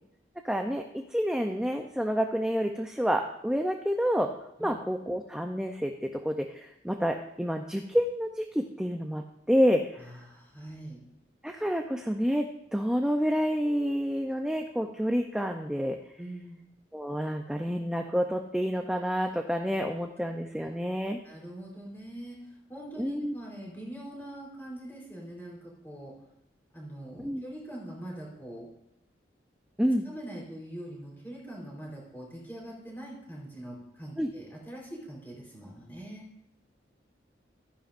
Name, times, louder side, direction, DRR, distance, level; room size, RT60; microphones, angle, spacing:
voice 1, 0.4-4.3 4.6-9.2 9.5-9.8 11.4-16.0 16.9-21.2 23.0-23.3 27.2-27.4 29.8-30.0 34.2-34.3, equal, 5° right, 3 dB, 0.5 m, -28 dB
voice 2, 9.9-11.0 16.2-16.6 21.2-26.1 26.7-28.7 30.0-36.2, right 1 dB, 10° left, -3 dB, 3.8 m, -43 dB
14.0 x 10.5 x 2.5 m, 0.84 s
head